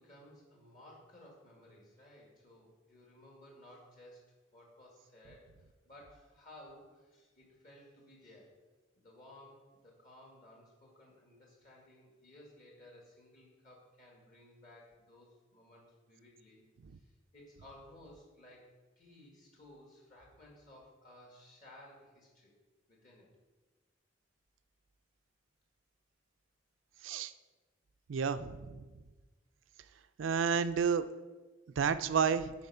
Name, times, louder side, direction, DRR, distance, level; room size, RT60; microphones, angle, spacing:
voice 1, 0.0-4.2 4.5-8.5 9.0-16.6 16.9-18.7 19.0-22.5 22.9-23.3, left 1 dB, 45° left, -2 dB, 1.9 m, -57 dB
voice 2, 28.1-28.8 30.2-31.1 31.8-32.5, right 6 dB, 70° right, 12 dB, 0.4 m, -30 dB
9.5 x 4.4 x 5.5 m, 1.3 s
head